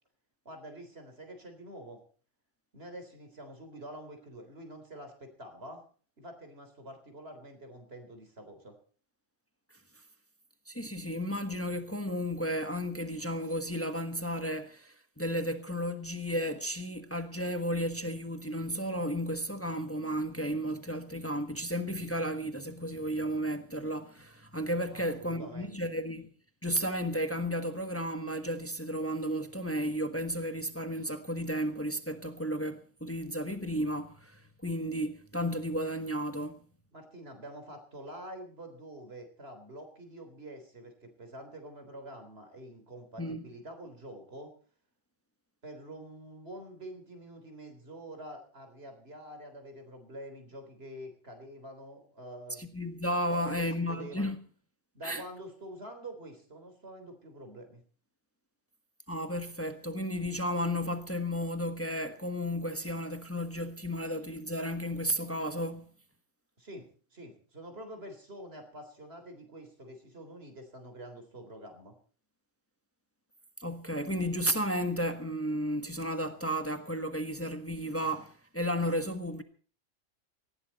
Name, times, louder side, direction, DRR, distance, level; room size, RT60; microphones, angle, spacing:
voice 1, 0.5-2.0 2.7-5.8 6.2-8.8 24.9-25.9 36.9-44.5 45.6-52.6 53.3-54.3 54.9-57.8 66.6-71.9, right 1 dB, 50° right, 4.0 m, -47 dB
voice 2, 10.7-26.3 26.6-36.6 43.2-43.4 52.5-54.4 55.0-55.2 59.1-65.9 73.6-79.4, equal, 10° left, 1.3 m, -33 dB
18.5 x 16.0 x 4.2 m
omnidirectional pair, 1.3 m